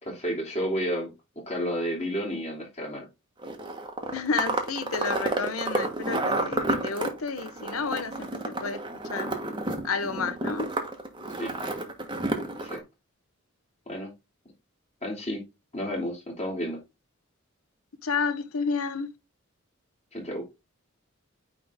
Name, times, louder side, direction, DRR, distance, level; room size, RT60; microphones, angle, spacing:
voice 1, 0.0-3.1 11.4-11.5 12.6-12.8 13.9-14.1 15.0-15.4 15.7-16.8 20.1-20.4, equal, 30° left, 2.9 m, -31 dB
sound 1, 3.4-12.8, right 2 dB, 20° right, 1.3 m, -30 dB
voice 2, 4.1-8.8 9.1-9.3 9.8-10.7 18.0-19.1, left 5 dB, 85° left, 0.9 m, -31 dB
9.4 x 3.7 x 3.5 m
head